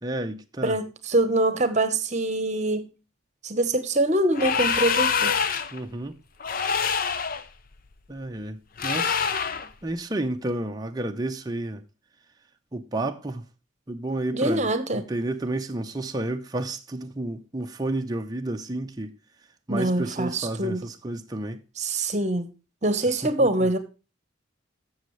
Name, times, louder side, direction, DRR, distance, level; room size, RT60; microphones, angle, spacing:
voice 1, 0.0-0.8 5.7-6.2 8.1-9.2 9.8-11.8 12.7-13.4 13.9-14.7 14.9-19.1 19.7-21.6 23.2-23.7, right 1 dB, 20° right, 0.7 m, -31 dB
voice 2, 0.6-2.9 3.4-5.3 14.3-15.1 19.7-20.9 21.8-22.5 22.8-23.8, right 1 dB, 35° right, 1.1 m, -24 dB
sound 1, 4.3-5.8 6.4-7.4 8.8-9.7, left 6 dB, 45° left, 0.6 m, -25 dB
14.0 x 6.3 x 3.2 m
head